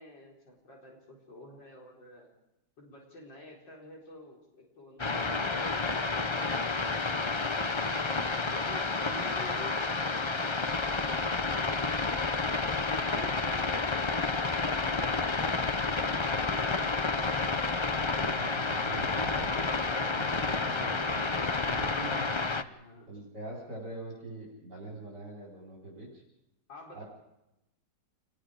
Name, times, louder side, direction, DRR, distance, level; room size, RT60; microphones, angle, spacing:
voice 1, 0.0-2.3 2.8-11.9 12.6-16.9 22.7-23.1 26.7-27.0, left 2 dB, 85° left, -2 dB, 5.1 m, -50 dB
sound 1, 5.0-22.6, left 3 dB, 35° left, 0.4 m, -30 dB
voice 2, 18.1-22.3 23.1-26.2 26.9-27.0, right 1 dB, 65° right, -4 dB, 5.2 m, -43 dB
28.5 x 21.0 x 5.1 m, 0.90 s
omnidirectional pair, 1.9 m